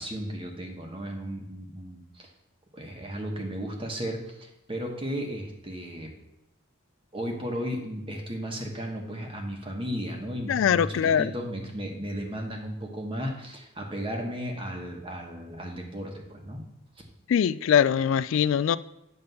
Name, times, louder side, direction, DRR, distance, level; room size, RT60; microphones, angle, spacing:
voice 1, 0.0-2.3 2.7-6.1 7.1-16.6, equal, 25° right, 1.2 m, -35 dB
voice 2, 10.5-11.3 17.3-18.8, left 8 dB, 75° left, 0.3 m, -22 dB
9.3 x 3.4 x 6.8 m
head